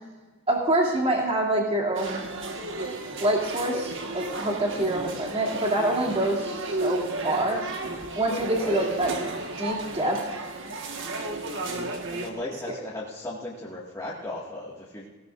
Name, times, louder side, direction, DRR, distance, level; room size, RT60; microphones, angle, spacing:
voice 1, 0.5-2.2 3.2-7.6 8.2-9.1 9.6-10.2 12.7-12.8, right 1 dB, 25° right, -2 dB, 2.7 m, -26 dB
sound 1, 1.9-12.3, right 2 dB, 55° right, 1.5 m, -33 dB
voice 2, 8.5-9.0 12.1-15.1, left 1 dB, 15° left, -6 dB, 1.9 m, -36 dB
19.0 x 17.0 x 2.5 m, 1.3 s
head